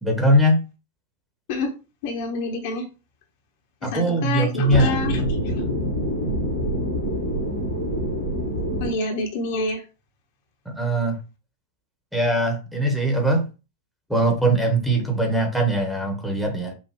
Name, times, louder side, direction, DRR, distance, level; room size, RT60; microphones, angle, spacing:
voice 1, 0.0-0.6 3.8-5.0 10.6-11.2 12.1-13.5 14.1-16.7, right 1 dB, ahead, 2 dB, 1.2 m, -21 dB
voice 2, 2.0-2.9 3.8-5.2 5.6-5.7 8.8-9.8, left 3 dB, 50° left, 3 dB, 1.0 m, -27 dB
sound 1, 4.6-8.9, equal, 90° left, 1.3 m, -25 dB
5.5 x 2.4 x 3.0 m, 0.31 s
figure-of-eight pair, 90°, 0 cm